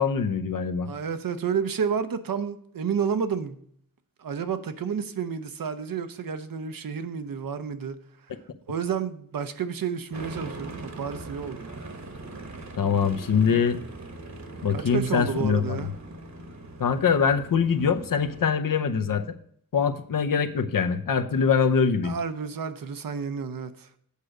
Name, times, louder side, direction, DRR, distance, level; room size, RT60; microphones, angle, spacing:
voice 1, 0.0-0.9 12.8-13.8 14.6-15.8 16.8-19.3 19.7-22.2, left 6 dB, 70° left, 0.7 m, -23 dB
voice 2, 0.8-3.6 4.2-8.3 8.7-11.8 14.7-15.9 22.0-23.9, right 6 dB, 75° right, 0.7 m, -30 dB
sound 1, 10.1-18.5, right 2 dB, 50° right, 1.2 m, -41 dB
8.3 x 4.9 x 6.4 m
wide cardioid pair, 105°, 35 cm